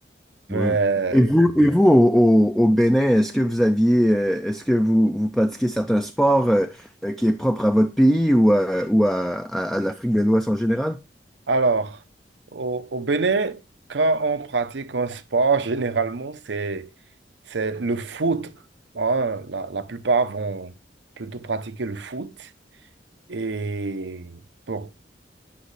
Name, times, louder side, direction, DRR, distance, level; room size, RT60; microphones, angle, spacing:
voice 1, 0.5-1.2 11.5-12.0 12.5-13.6 13.9-16.9 17.5-18.6 18.9-20.7 21.2-22.5 23.3-24.4 24.7-24.9, right 4 dB, 90° right, 0.7 m, -25 dB
voice 2, 1.1-11.0, equal, ahead, 0.4 m, -19 dB
10.5 x 5.4 x 3.2 m
head